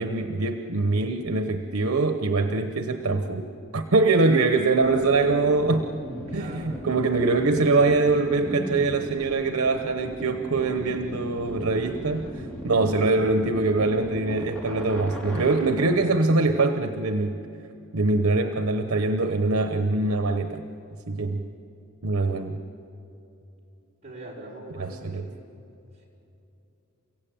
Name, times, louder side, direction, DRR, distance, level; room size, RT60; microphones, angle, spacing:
voice 1, 0.0-5.9 6.3-12.3 12.6-17.4 17.9-20.6 21.1-21.5 22.0-22.6 24.8-25.3, right 3 dB, 90° right, 7 dB, 1.0 m, -23 dB
sound 1, 4.9-15.9, equal, 5° left, 4.4 m, -37 dB
voice 2, 6.3-6.9 18.2-18.4 24.0-25.3, right 2 dB, 35° right, -3 dB, 6.0 m, -42 dB
30.0 x 16.0 x 8.9 m, 2.9 s
head